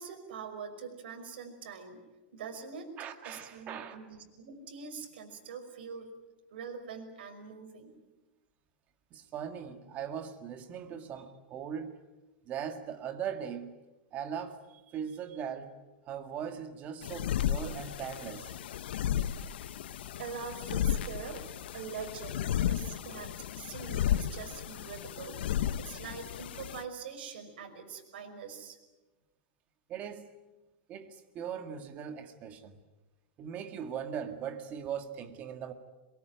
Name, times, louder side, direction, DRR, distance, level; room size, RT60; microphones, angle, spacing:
voice 1, 0.0-2.0 2.3-3.0 3.2-6.1 6.5-8.0 20.2-21.5 21.7-25.4 25.8-28.8, right 6 dB, 80° right, 4 dB, 5.6 m, -44 dB
voice 2, 3.0-4.0 9.1-11.9 12.5-13.8 14.1-15.7 16.0-18.5 29.9-30.3 30.9-32.8 33.4-35.7, right 8 dB, 30° right, 8 dB, 2.0 m, -39 dB
sound 1, 17.0-26.8, left 10 dB, 85° left, 1.2 m, -34 dB
23.0 x 23.0 x 9.3 m, 1.1 s
supercardioid pair, 165°, 5 cm